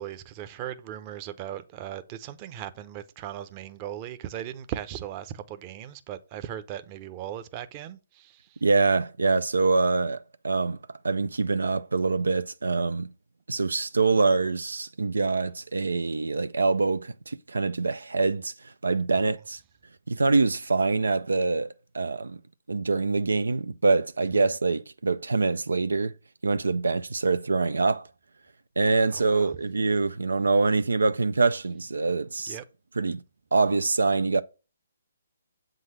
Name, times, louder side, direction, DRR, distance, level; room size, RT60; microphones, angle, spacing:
voice 1, 0.0-8.6 29.1-29.5 32.5-32.6, right 11 dB, 30° right, 0.7 m, -38 dB
voice 2, 8.6-13.1 13.5-19.6 20.1-22.4 22.7-26.1 26.4-28.1 28.8-32.6 33.0-33.2 33.5-34.4, right 3 dB, 80° right, 0.4 m, -25 dB
7.7 x 3.9 x 6.3 m
figure-of-eight pair, 140°, 0 cm